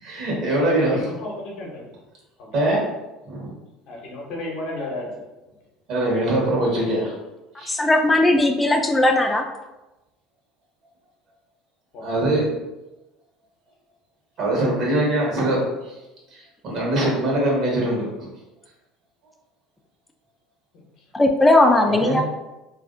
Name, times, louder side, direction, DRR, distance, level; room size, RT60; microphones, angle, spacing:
voice 1, 0.0-1.0 2.5-2.9 3.3-3.5 5.9-7.1 7.6-7.7 12.0-12.5 14.4-15.7 16.3-18.3 21.8-22.2, right 1 dB, 60° right, -3 dB, 1.0 m, -22 dB
voice 2, 0.8-1.9 2.4-2.5 3.9-5.2 11.9-12.3, left 2 dB, 65° left, -1 dB, 0.7 m, -33 dB
voice 3, 7.7-9.4 21.1-22.2, left 1 dB, 15° left, 4 dB, 0.3 m, -17 dB
2.4 x 2.0 x 2.5 m, 1.0 s
supercardioid pair, 95°, 0 cm